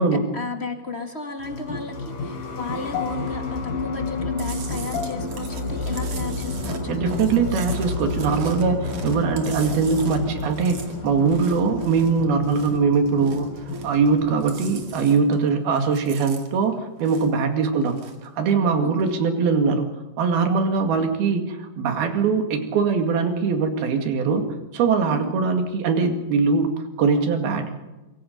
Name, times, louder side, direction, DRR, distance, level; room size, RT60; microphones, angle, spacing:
voice 1, 0.0-7.2 18.8-19.2 25.1-25.3, left 3 dB, 25° left, 4 dB, 1.7 m, -34 dB
sound 1, 1.4-15.1, left 3 dB, 80° left, 5.6 m, -30 dB
Chewing mastication, 4.4-12.8 13.1-14.1 14.3-15.5 15.8-17.4 17.8-18.3, right 5 dB, 50° right, 3.2 m, -41 dB
voice 2, 6.9-19.9 20.2-24.5 24.7-27.8, right 5 dB, 85° right, 5 dB, 4.1 m, -22 dB
26.0 x 23.5 x 5.3 m, 1.1 s
omnidirectional pair, 4.3 m